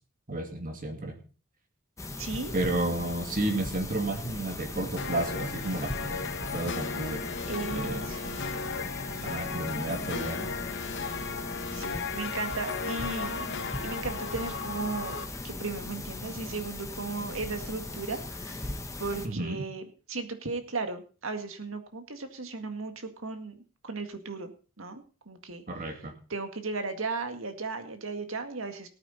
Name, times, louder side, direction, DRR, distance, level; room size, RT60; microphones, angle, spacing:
voice 1, 0.3-1.2 2.5-7.2 7.7-8.0 9.2-10.5 19.2-19.7 25.7-26.1, right 2 dB, 40° right, 4 dB, 2.5 m, -32 dB
sound 1, 2.0-19.3, left 2 dB, 15° left, 1.3 m, -39 dB
voice 2, 2.2-2.5 7.5-8.5 11.7-13.5 13.8-15.2 15.4-24.5 24.8-25.6 26.3-28.9, right 3 dB, 70° right, 7 dB, 2.0 m, -36 dB
sound 2, 5.0-15.2, left 5 dB, 60° left, 1.2 m, -35 dB
19.0 x 9.1 x 4.3 m, 0.36 s
head